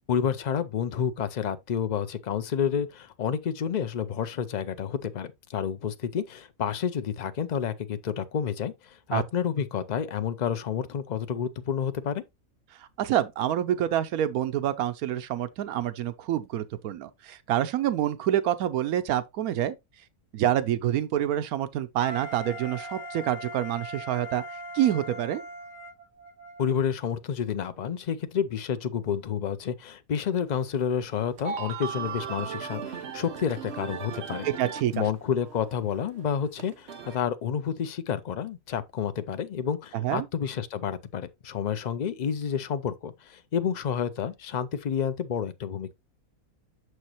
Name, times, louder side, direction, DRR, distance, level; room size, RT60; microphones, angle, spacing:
voice 1, 0.1-12.2 26.6-34.5 34.9-45.9, left 8 dB, 60° left, 0.4 m, -30 dB
voice 2, 12.8-19.7 20.3-24.4 24.7-25.4 34.4-35.0 39.9-40.3, right 11 dB, 80° right, 1.1 m, -27 dB
Wind instrument woodwind instrument, 22.0-26.7, right 1 dB, 5° left, 4.8 m, -40 dB
sound 1, 30.5-30.6 31.1-35.0 35.2-37.2, right 7 dB, 50° right, 1.1 m, -37 dB
6.5 x 6.4 x 2.9 m
omnidirectional pair, 1.5 m